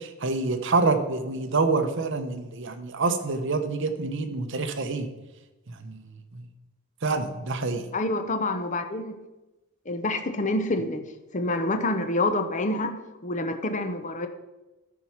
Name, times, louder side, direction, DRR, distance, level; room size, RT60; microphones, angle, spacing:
voice 1, 0.0-5.1 5.7-6.0 7.0-7.8, right 3 dB, 55° right, 8 dB, 0.8 m, -27 dB
voice 2, 7.9-9.1 9.9-11.0 11.3-12.9 13.2-14.3, left 2 dB, 35° left, 7 dB, 0.7 m, -27 dB
13.5 x 4.7 x 5.7 m, 1.1 s
head